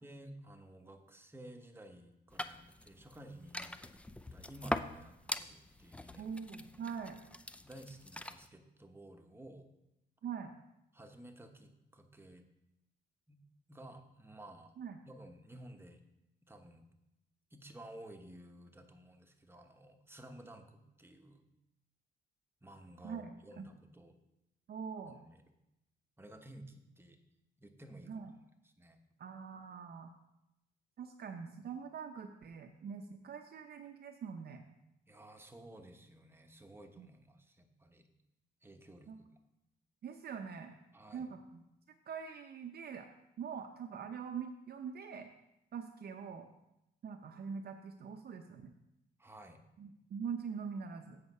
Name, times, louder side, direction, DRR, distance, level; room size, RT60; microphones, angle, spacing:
voice 1, 0.0-3.7 4.3-6.3 6.7-6.8 7.6-9.7 10.9-12.5 13.3-13.4 13.7-14.7 15.1-16.0 16.4-16.9 17.5-21.4 22.6-24.2 25.1-25.5 26.2-27.2 27.6-28.2 28.6-29.0 35.1-38.1 38.6-39.3 40.9-41.3 49.2-49.6, right 1 dB, 10° right, 5 dB, 1.1 m, -54 dB
sound 1, 2.3-8.5, left 1 dB, 5° left, 0.4 m, -43 dB
voice 2, 6.2-7.2 10.2-10.5 14.8-15.0 23.0-23.7 24.7-25.2 28.1-28.3 29.2-30.1 31.0-34.6 37.0-37.1 39.1-39.2 40.0-40.7 41.1-41.6 42.1-43.1 43.4-45.3 45.7-46.5 47.0-48.7 49.8-51.2, right 6 dB, 50° right, 5 dB, 0.7 m, -43 dB
8.0 x 5.7 x 5.4 m, 0.88 s
cardioid pair, 90°, 20 cm